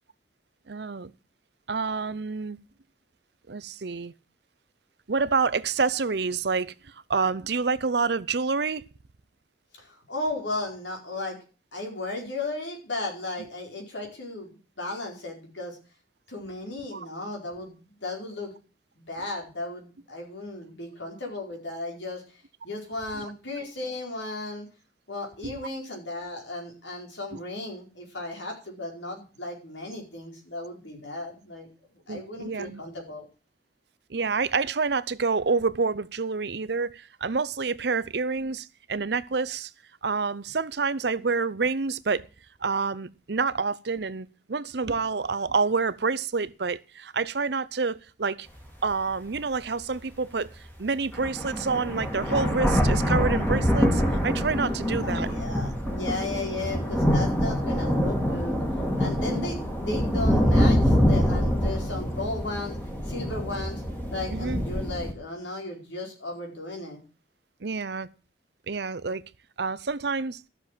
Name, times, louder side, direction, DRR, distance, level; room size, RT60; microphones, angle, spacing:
voice 1, 0.7-1.1 1.7-2.6 3.5-4.1 5.1-6.7 7.1-8.8 16.9-17.1 23.2-23.3 25.4-25.5 32.1-32.8 34.1-39.7 40.0-42.2 42.6-48.5 48.8-50.5 50.8-55.3 59.3-59.5 64.3-64.6 67.6-68.1 68.7-69.2 69.6-70.4, right 4 dB, 65° right, 0.7 m, -28 dB
voice 2, 9.8-11.4 11.7-15.8 16.3-18.5 19.0-22.2 22.6-24.7 25.1-31.7 32.1-33.3 55.0-58.6 59.0-62.8 63.0-63.8 64.1-67.0, left 2 dB, 80° left, 4.7 m, -35 dB
sound 1, 48.6-48.7 49.3-49.4 50.7-50.8 51.1-65.1, equal, 10° left, 2.1 m, -25 dB
13.0 x 6.9 x 7.5 m
head